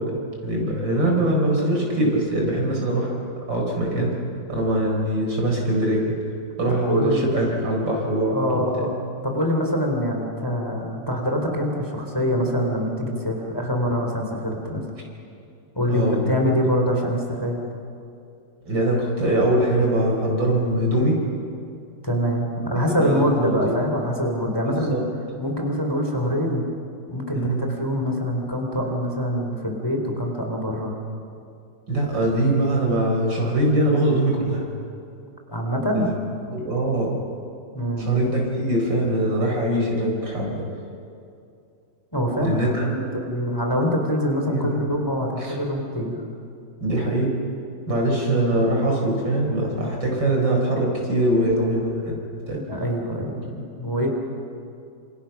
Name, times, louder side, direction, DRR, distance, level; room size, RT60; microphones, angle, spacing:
voice 1, 0.0-3.1 3.5-4.1 4.5-6.1 6.6-8.5 15.9-16.2 18.7-21.2 23.0-23.7 24.7-25.1 27.3-27.6 31.9-34.7 35.9-36.1 36.5-37.1 38.0-40.7 42.4-42.9 44.5-44.9 45.4-45.5 46.8-47.3 47.9-52.2 52.5-52.6, right 1 dB, 80° right, 0 dB, 5.3 m, -22 dB
voice 2, 6.7-7.4 8.3-14.8 15.7-17.6 22.0-25.0 25.4-26.6 27.1-30.9 35.5-36.1 37.7-38.1 42.1-46.2 52.5-54.1, equal, 10° left, 1 dB, 3.2 m, -24 dB
27.5 x 27.0 x 5.9 m, 2.5 s
omnidirectional pair, 2.0 m